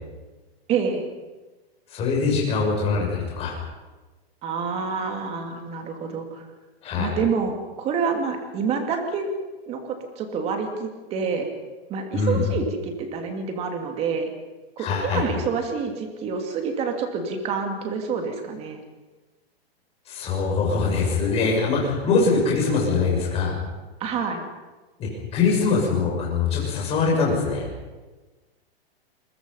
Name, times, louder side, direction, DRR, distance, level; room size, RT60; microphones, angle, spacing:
voice 1, 0.7-1.1 4.4-6.5 7.0-9.3 9.7-11.5 11.9-14.3 14.8-18.8 24.0-24.4, right 5 dB, 20° right, 4 dB, 2.7 m, -27 dB
voice 2, 1.9-3.5 6.8-7.1 12.1-12.5 14.8-15.2 20.1-23.6 25.0-27.7, left 4 dB, 20° left, -1 dB, 6.6 m, -23 dB
28.0 x 22.5 x 5.7 m, 1.2 s
hypercardioid pair, 170°, 31 cm